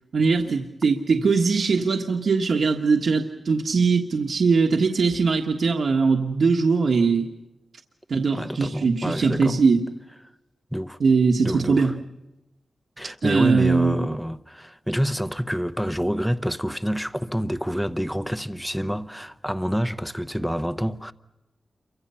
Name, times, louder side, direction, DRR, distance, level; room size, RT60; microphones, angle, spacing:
voice 1, 0.1-7.3 8.1-9.8 11.0-11.9 13.2-14.1, right 4 dB, 70° right, 1.5 m, -21 dB
voice 2, 8.3-9.6 10.7-11.0 11.4-11.9 13.0-21.1, equal, ahead, 0.8 m, -27 dB
29.0 x 24.5 x 5.7 m
wide cardioid pair, 125°, 0 cm